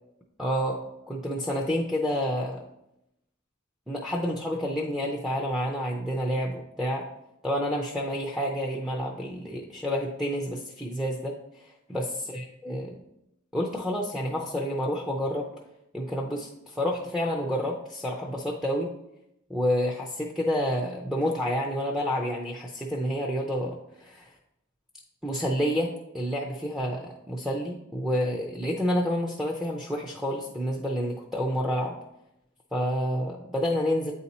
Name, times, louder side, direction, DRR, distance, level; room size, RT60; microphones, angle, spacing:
voice 1, 0.4-2.7 3.9-7.1 7.4-12.9 13.5-15.5 15.9-18.9 19.5-24.3 25.2-31.9 32.7-34.1, equal, ahead, -1 dB, 0.4 m, -29 dB
8.3 x 2.8 x 4.1 m, 0.84 s
head